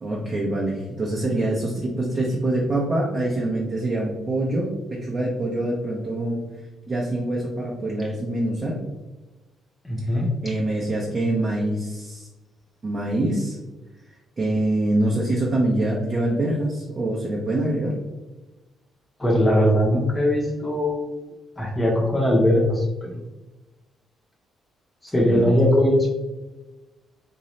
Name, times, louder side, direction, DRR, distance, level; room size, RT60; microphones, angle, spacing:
voice 1, 0.0-6.4 6.9-8.8 10.0-12.3 12.8-13.6 14.4-18.0 25.2-25.5, right 1 dB, 35° right, -3 dB, 0.8 m, -25 dB
voice 2, 9.8-10.6 19.2-21.2 21.6-23.1 25.1-26.1, left 1 dB, 15° left, -3 dB, 0.9 m, -20 dB
4.0 x 2.7 x 3.1 m, 1.1 s
cardioid pair, 90°, 0 cm